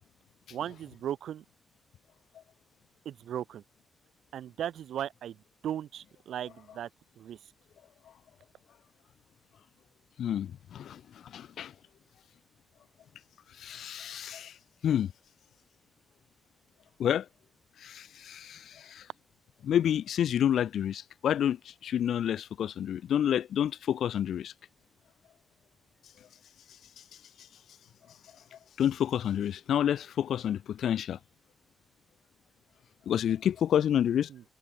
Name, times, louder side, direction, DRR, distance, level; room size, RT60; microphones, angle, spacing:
voice 1, 0.5-1.4 3.0-3.6 4.3-5.4 5.6-6.9 7.2-7.4 34.3-34.4, right 10 dB, 85° right, 2.8 m, -37 dB
voice 2, 10.2-11.7 13.5-14.6 14.8-15.1 17.0-17.3 17.8-19.1 19.6-24.5 26.7-27.0 27.4-27.5 28.5-31.2 33.1-34.3, left 10 dB, 80° left, 0.7 m, -29 dB
cardioid pair, 105°, 0 cm